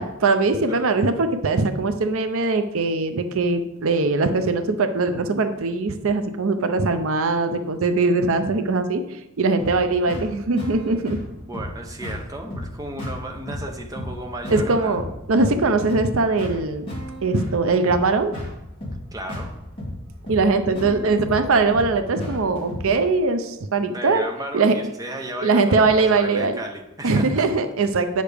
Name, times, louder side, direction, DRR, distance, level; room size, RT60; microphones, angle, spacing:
voice 1, 0.0-11.2 14.5-15.0 15.3-16.9 17.2-18.3 20.3-24.2 24.5-24.7 25.4-26.5 27.0-28.2, right 3 dB, 70° right, 8 dB, 0.5 m, -21 dB
sound 1, 9.6-23.0, left 1 dB, 25° left, 2.3 m, -34 dB
voice 2, 11.3-15.0 19.1-19.5 23.9-27.5, right 1 dB, 15° right, 3 dB, 0.7 m, -34 dB
8.8 x 6.5 x 3.4 m, 0.94 s
head